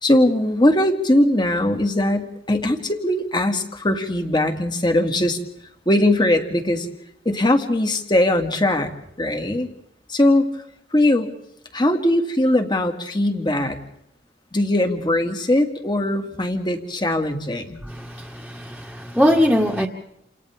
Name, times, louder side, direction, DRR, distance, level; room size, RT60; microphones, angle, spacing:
voice 1, 0.0-5.4 5.9-6.9 7.2-8.9 9.2-9.7 10.1-10.6 10.9-11.3 11.7-13.8 14.5-17.8, left 1 dB, 25° left, 2.3 m, -20 dB
voice 2, 17.8-19.9, equal, ahead, 1.9 m, -21 dB
29.5 x 28.0 x 3.6 m
head